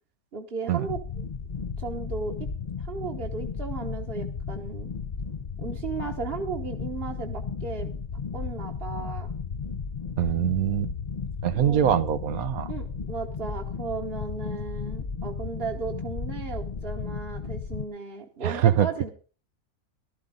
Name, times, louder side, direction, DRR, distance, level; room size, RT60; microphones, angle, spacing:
voice 1, 0.3-1.0 1.8-2.3 2.8-4.9 5.6-7.9 8.3-9.3 11.5-11.9 12.7-19.1, right 5 dB, 45° right, 0 dB, 1.3 m, -35 dB
sound 1, 0.9-17.8, left 5 dB, 40° left, 0.7 m, -34 dB
voice 2, 10.2-10.9 11.4-12.7 18.4-18.9, right 10 dB, 75° right, 13 dB, 1.2 m, -23 dB
15.0 x 13.0 x 3.8 m, 0.37 s
omnidirectional pair, 1.5 m